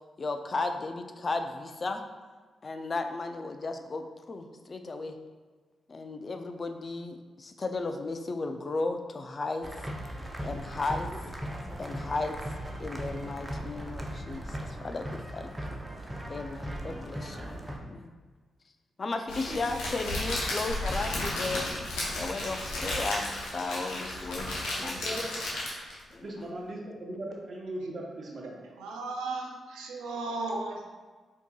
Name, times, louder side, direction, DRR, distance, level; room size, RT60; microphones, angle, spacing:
voice 1, 0.2-2.0 2.6-5.2 5.9-9.7 10.4-11.1 11.8-12.4 12.8-15.8 16.3-18.1 19.0-21.7 22.2-25.0 26.1-26.5, left 3 dB, 45° left, 6 dB, 0.3 m, -35 dB
sound 1, 9.6-17.8, equal, 15° right, 0.6 m, -38 dB
Crackle, 19.3-26.0, left 1 dB, 85° left, 0.7 m, -33 dB
voice 2, 24.8-25.3 26.2-28.6, right 1 dB, 50° right, -1 dB, 0.8 m, -38 dB
voice 3, 28.8-30.9, right 3 dB, 85° right, 0 dB, 0.4 m, -35 dB
4.4 x 2.7 x 2.3 m, 1.4 s
hypercardioid pair, 40°, 0 cm